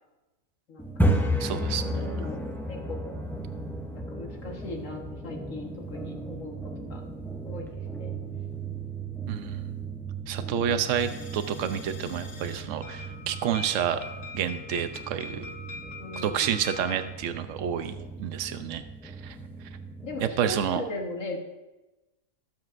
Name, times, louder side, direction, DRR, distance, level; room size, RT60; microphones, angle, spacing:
voice 1, 0.7-1.1 1.8-2.4 2.7-3.2 3.9-6.6 6.9-7.0 7.4-8.2 16.0-16.5 20.0-21.4, left 2 dB, 60° left, 1 dB, 1.7 m, -39 dB
sound 1, 0.8-20.7, right 1 dB, 5° left, 0.3 m, -34 dB
voice 2, 1.4-2.2 9.3-9.7 10.3-14.0 14.3-15.4 16.2-19.4 20.4-20.8, right 8 dB, 65° right, 9 dB, 1.0 m, -29 dB
sound 2, 10.9-17.1, left 4 dB, 40° left, 1.3 m, -43 dB
18.5 x 7.4 x 2.5 m, 1.1 s
omnidirectional pair, 1.5 m